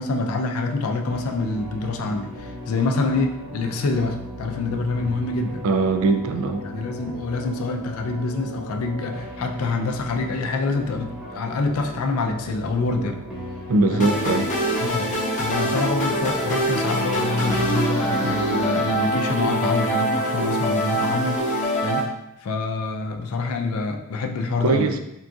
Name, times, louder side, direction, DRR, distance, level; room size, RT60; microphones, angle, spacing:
voice 1, 0.0-5.7 6.6-13.2 13.9-14.1 14.8-15.1 15.4-21.4 21.8-22.1 22.4-25.0, left 3 dB, 80° left, 4 dB, 0.4 m, -26 dB
sound 1, 1.1-19.0, left 1 dB, 5° right, 0.9 m, -37 dB
voice 2, 5.6-6.6 13.7-14.5 24.6-25.0, right 3 dB, 70° right, 6 dB, 0.3 m, -21 dB
sound 2, 14.0-22.0, right 1 dB, 35° left, 0.6 m, -24 dB
3.7 x 2.5 x 2.3 m, 0.86 s
head